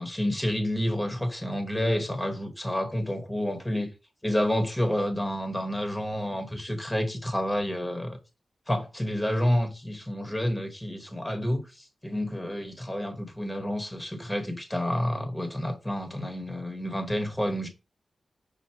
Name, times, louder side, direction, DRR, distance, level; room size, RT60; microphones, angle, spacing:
voice 1, 0.0-3.9 4.2-8.2 8.7-17.7, equal, 10° left, 0.9 m, -29 dB
5.5 x 2.2 x 4.4 m
cardioid pair, 70°, 0 cm